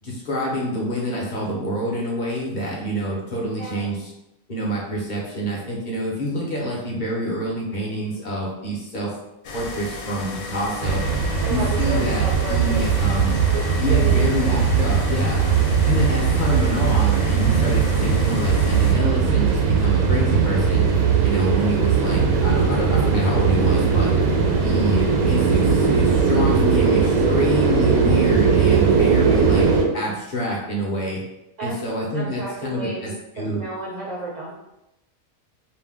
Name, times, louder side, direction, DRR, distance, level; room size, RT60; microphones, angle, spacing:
voice 1, 0.0-4.1 4.5-9.1 9.5-11.0 11.5-13.4 13.8-15.4 15.9-20.9 21.2-24.1 24.6-29.7 29.9-31.2 31.6-33.1 33.4-33.6, equal, 50° left, -3 dB, 0.6 m, -27 dB
voice 2, 3.6-3.9 11.4-12.8 13.5-14.6 31.6-31.9 32.1-33.1 33.4-34.5, right 2 dB, 65° right, -5 dB, 0.4 m, -32 dB
sound 1, 9.4-18.9, left 3 dB, 75° left, 1.0 m, -34 dB
sound 2, 10.8-29.8, right 6 dB, 85° right, 1.0 m, -19 dB
2.6 x 2.1 x 3.4 m, 0.90 s
omnidirectional pair, 1.5 m